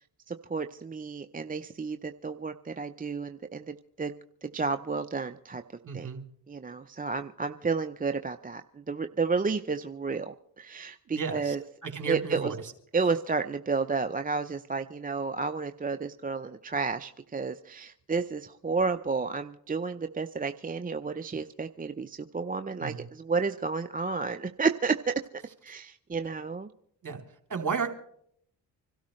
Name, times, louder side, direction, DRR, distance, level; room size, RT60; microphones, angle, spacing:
voice 1, 0.3-4.1 4.4-5.6 5.9-6.1 6.5-11.6 12.1-12.5 12.9-25.1 25.6-26.7, right 4 dB, 20° right, 8 dB, 0.6 m, -31 dB
voice 2, 5.8-6.2 11.1-11.5 11.8-12.6 22.8-23.0 27.0-27.2 27.5-27.9, right 6 dB, 40° right, 3 dB, 3.0 m, -33 dB
26.0 x 12.5 x 3.2 m, 0.68 s
supercardioid pair, 55°, 45 cm